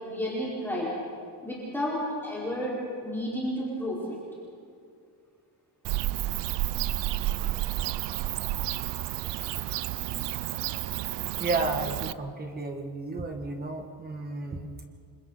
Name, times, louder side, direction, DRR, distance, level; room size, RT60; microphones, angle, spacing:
voice 1, 0.0-0.9 1.4-2.8 3.0-4.2, equal, 5° left, -8 dB, 4.7 m, -31 dB
Bird / Cricket, 5.8-12.1, right 15 dB, 75° right, 0.6 m, -31 dB
voice 2, 11.4-14.7, right 2 dB, 20° right, 3 dB, 1.7 m, -32 dB
28.5 x 25.0 x 4.1 m, 2.3 s
cardioid pair, 175°, 42 cm